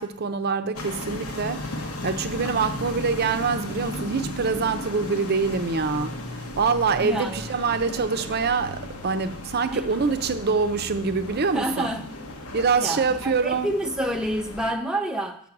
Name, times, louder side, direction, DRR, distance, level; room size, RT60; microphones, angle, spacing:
voice 1, 0.0-11.9 12.5-13.7, right 5 dB, 45° right, 0.6 m, -25 dB
sound 1, 0.7-14.7, left 1 dB, 85° left, 1.1 m, -35 dB
voice 2, 7.0-7.5 9.7-9.8 11.5-12.0 12.8-15.4, right 1 dB, 5° right, 0.5 m, -28 dB
7.6 x 5.6 x 5.9 m
head